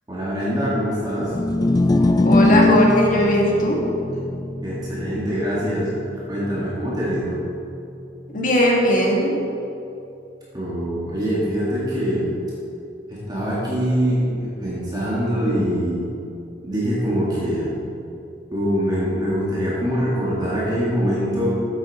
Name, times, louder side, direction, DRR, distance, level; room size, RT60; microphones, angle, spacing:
voice 1, 0.1-1.3 4.6-5.9 6.3-7.4 10.5-12.3 13.1-16.0 16.6-17.8 18.5-21.5, equal, 20° right, -8 dB, 1.7 m, -23 dB
sound 1, 1.2-7.6, left 2 dB, 20° left, 0.4 m, -22 dB
voice 2, 2.2-3.8 8.3-9.3, equal, 45° left, -2 dB, 1.7 m, -18 dB
8.4 x 7.9 x 4.1 m, 2.7 s
head